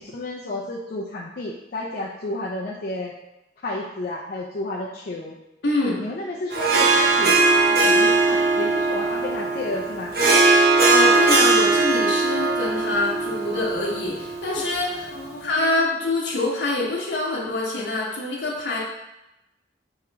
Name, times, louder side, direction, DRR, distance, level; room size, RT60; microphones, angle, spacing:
voice 1, 0.0-3.1 3.6-5.4 6.0-7.3 7.7-10.1 15.1-16.0, left 2 dB, 55° left, -4 dB, 0.5 m, -32 dB
voice 2, 5.6-6.0 10.9-15.1 15.4-18.8, left 2 dB, 80° left, -4 dB, 0.9 m, -25 dB
Harp, 6.5-15.2, right 3 dB, 60° right, 0.8 m, -20 dB
3.6 x 3.0 x 4.5 m, 0.93 s
head